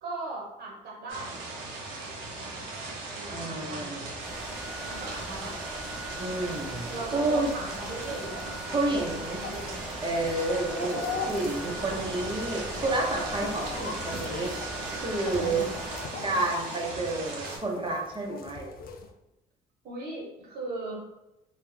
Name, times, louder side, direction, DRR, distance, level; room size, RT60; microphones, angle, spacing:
voice 1, 0.0-1.4 2.2-2.7 3.1-3.9 4.9-5.6 6.9-9.8 15.4-15.7 19.8-21.0, right 2 dB, 60° right, -3 dB, 1.1 m, -39 dB
sound 1, 1.1-17.6, right 2 dB, 80° right, 0.6 m, -38 dB
voice 2, 3.3-4.0 6.2-7.5 8.7-9.4 10.0-14.5 15.0-15.6 16.2-18.7, right 2 dB, 25° right, -1 dB, 0.8 m, -30 dB
sound 2, 4.2-16.1, right 1 dB, ahead, 0.5 m, -41 dB
sound 3, 5.8-19.1, left 4 dB, 50° left, 0.4 m, -41 dB
2.3 x 2.2 x 3.2 m, 0.92 s
hypercardioid pair, 60°, 19 cm